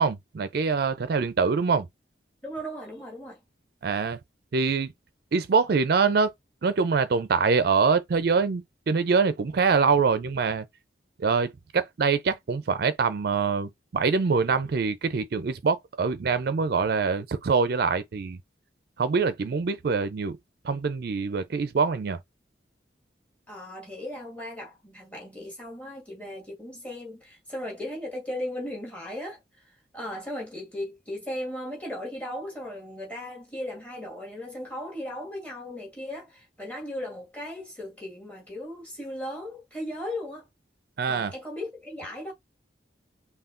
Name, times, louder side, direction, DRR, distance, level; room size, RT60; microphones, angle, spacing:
voice 1, 0.0-1.9 3.8-4.2 4.5-4.9 5.3-6.3 6.6-10.7 11.2-18.4 19.0-20.4 20.6-22.2 41.0-41.3, right 5 dB, 55° right, 0.4 m, -24 dB
voice 2, 2.4-3.4 23.5-29.7 29.9-40.5 41.1-42.3, left 1 dB, 10° left, 1.7 m, -37 dB
5.6 x 2.2 x 2.5 m
head